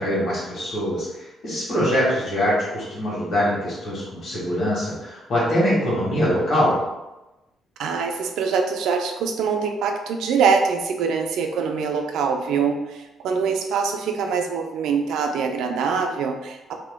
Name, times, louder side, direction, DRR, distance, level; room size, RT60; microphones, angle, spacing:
voice 1, 0.0-6.8, equal, 60° left, -7 dB, 1.4 m, -23 dB
voice 2, 7.8-16.8, right 5 dB, 85° right, 4 dB, 0.4 m, -24 dB
2.9 x 2.2 x 3.4 m, 1.0 s
cardioid pair, 120°, 0 cm